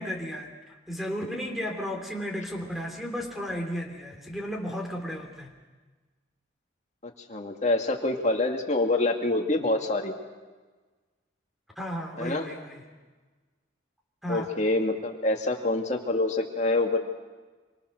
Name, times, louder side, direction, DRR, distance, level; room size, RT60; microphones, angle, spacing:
voice 1, 0.0-5.5 11.8-12.8 14.2-14.5, equal, ahead, 2 dB, 3.2 m, -34 dB
voice 2, 7.3-10.1 12.2-12.5 14.3-17.0, left 2 dB, 35° left, 3 dB, 2.2 m, -26 dB
26.5 x 25.0 x 6.5 m, 1.3 s
head